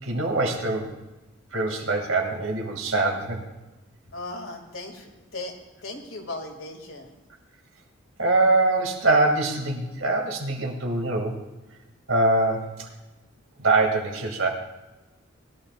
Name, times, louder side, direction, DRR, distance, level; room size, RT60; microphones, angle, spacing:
voice 1, 0.0-0.9 1.5-3.4 8.2-11.4 12.1-12.9 13.6-14.5, right 2 dB, 80° right, 1 dB, 2.4 m, -23 dB
voice 2, 4.1-5.5 5.8-7.1, left 2 dB, 85° left, 1 dB, 2.5 m, -37 dB
20.5 x 12.5 x 2.5 m, 1.1 s
head